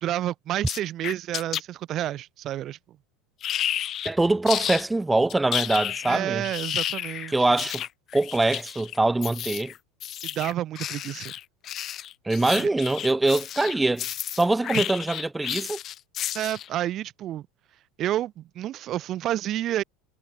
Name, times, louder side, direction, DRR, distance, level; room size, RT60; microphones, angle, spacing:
voice 1, 0.0-2.8 6.1-7.5 10.2-11.3 12.6-12.7 14.7-14.8 16.3-17.5 18.0-19.8, right 13 dB, 45° right, 2.3 m, -29 dB
sound 1, 0.7-1.6 3.4-4.1 4.5-4.8 5.3-16.8, left 11 dB, 45° left, 1.0 m, -32 dB
voice 2, 4.0-6.4 7.3-7.8 8.1-9.7 12.2-14.0 14.3-15.8, right 2 dB, 10° right, 0.9 m, -23 dB
hypercardioid pair, 95°, 0 cm